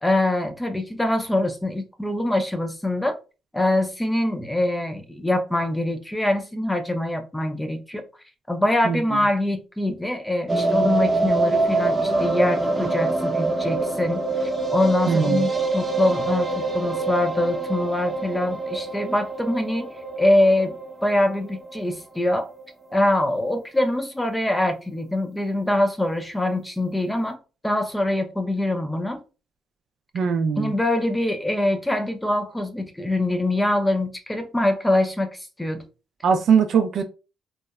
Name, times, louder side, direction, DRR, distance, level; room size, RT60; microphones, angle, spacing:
voice 1, 0.0-3.1 3.5-8.0 8.5-19.9 20.2-20.8 21.0-22.5 22.9-27.4 27.6-29.2 30.6-35.8, left 1 dB, 10° left, 0.5 m, -24 dB
voice 2, 8.8-9.2 15.1-15.5 30.1-30.7 36.2-37.0, right 6 dB, 65° right, 0.3 m, -21 dB
sound 1, 10.5-22.6 22.9-23.0 23.3-23.4 23.6-23.7, right 3 dB, 30° right, 0.7 m, -25 dB
2.8 x 2.1 x 2.3 m
cardioid pair, 90°, 0 cm